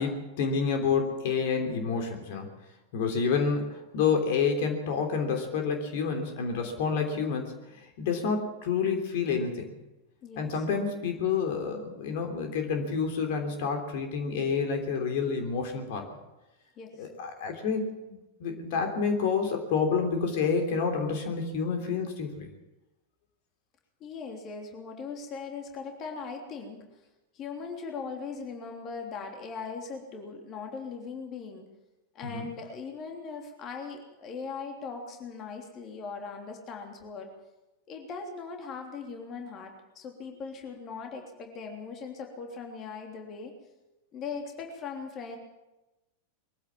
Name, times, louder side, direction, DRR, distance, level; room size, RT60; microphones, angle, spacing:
voice 1, 0.0-2.5 2.9-9.8 10.3-16.2 17.0-22.5 32.2-32.4, left 5 dB, 50° left, 4 dB, 3.3 m, -29 dB
voice 2, 10.2-10.6 16.8-17.1 24.0-26.8 27.3-31.7 32.1-37.3 37.9-43.5 44.1-45.4, left 5 dB, 30° left, 2 dB, 3.3 m, -39 dB
22.5 x 15.5 x 7.4 m, 1.0 s
figure-of-eight pair, 90°, 0 cm